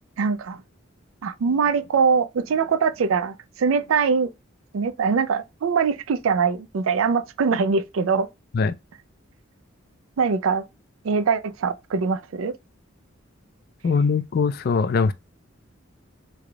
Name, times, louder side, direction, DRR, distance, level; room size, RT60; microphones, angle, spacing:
voice 1, 0.2-0.6 1.2-4.3 4.7-8.3 10.2-10.6 11.0-12.5, right 5 dB, 85° right, 0.4 m, -22 dB
voice 2, 13.8-15.1, left 5 dB, 50° left, 0.3 m, -21 dB
3.3 x 2.3 x 3.7 m
head